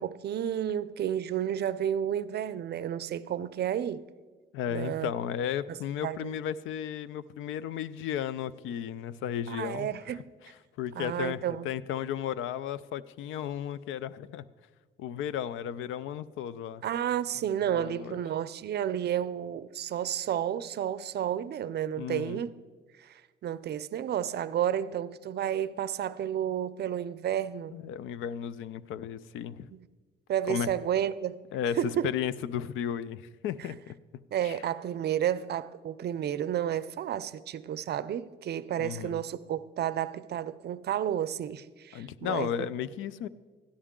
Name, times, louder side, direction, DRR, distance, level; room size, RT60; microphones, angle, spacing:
voice 1, 0.0-4.0 4.7-5.1 5.7-5.8 6.0-6.3 9.5-10.3 10.9-11.7 16.8-22.5 23.0-27.7 29.7-29.9 30.3-31.4 31.8-32.2 34.3-42.7, right 10 dB, 55° right, 0.5 m, -31 dB
voice 2, 4.5-9.9 10.4-14.5 15.0-16.8 17.7-18.2 22.0-22.4 27.7-29.7 30.5-30.7 31.5-31.8 32.0-33.9 34.4-34.5 38.8-39.2 41.9-43.3, left 9 dB, 85° left, 0.4 m, -34 dB
12.5 x 11.0 x 3.7 m
cardioid pair, 90°, 20 cm